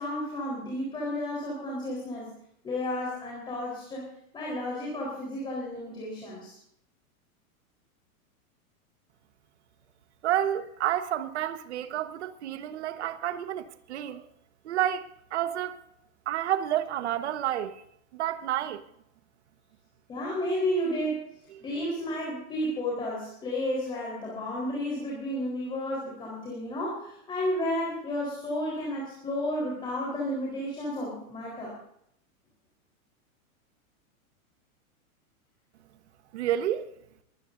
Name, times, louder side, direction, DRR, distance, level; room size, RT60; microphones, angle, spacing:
voice 1, 0.0-2.3 2.6-4.1 4.3-6.6 20.1-21.3 21.6-31.8, left 1 dB, 10° left, 4.2 m, -32 dB
voice 2, 10.2-14.3 14.6-15.8 16.2-17.8 18.1-18.8 36.3-36.9, right 11 dB, 50° right, 1.4 m, -30 dB
21.5 x 16.0 x 2.7 m
supercardioid pair, 175°, 43 cm